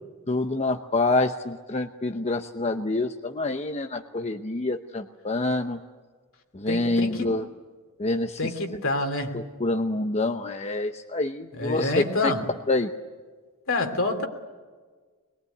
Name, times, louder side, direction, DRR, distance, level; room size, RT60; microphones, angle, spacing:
voice 1, 0.3-5.8 6.5-7.4 8.0-8.5 9.3-12.3 12.7-12.9, left 2 dB, 30° left, 0.8 m, -27 dB
voice 2, 6.7-7.3 8.4-9.4 11.5-12.5 13.7-14.3, left 2 dB, 65° left, 3.1 m, -27 dB
25.0 x 21.5 x 9.4 m
head